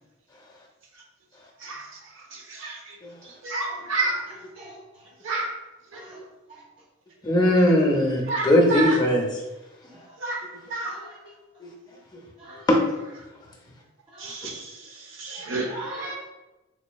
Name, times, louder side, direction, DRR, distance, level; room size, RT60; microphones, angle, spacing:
voice 1, 1.6-3.0 3.2-4.2 5.2-5.5 5.9-6.0 8.3-9.0 10.2-10.4 10.7-11.0 12.5-12.6 14.2-16.1, right 3 dB, 70° right, 0 dB, 0.8 m, -31 dB
voice 2, 4.6-5.1 5.9-6.2 6.5-6.6 9.9-10.2 10.8-11.3 12.4-12.6 14.1-14.3 15.7-16.1, right 1 dB, 30° right, -5 dB, 1.3 m, -41 dB
voice 3, 7.2-9.4 11.6-11.7 12.1-12.2 12.7-12.8, left 1 dB, 20° left, 0 dB, 0.6 m, -20 dB
4.1 x 2.9 x 2.2 m, 1.0 s
head